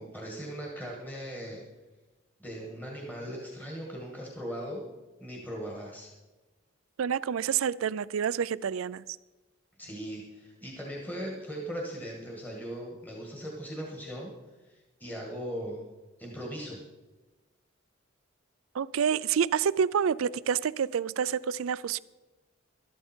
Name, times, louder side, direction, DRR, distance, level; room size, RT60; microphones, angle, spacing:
voice 1, 0.0-1.6 2.4-4.8 5.2-6.1 9.8-14.3 14.6-15.9 16.2-16.8, equal, 10° left, 1.8 m, -39 dB
voice 2, 7.0-9.0 18.7-22.0, right 7 dB, 90° right, 0.4 m, -28 dB
12.5 x 12.5 x 4.4 m
head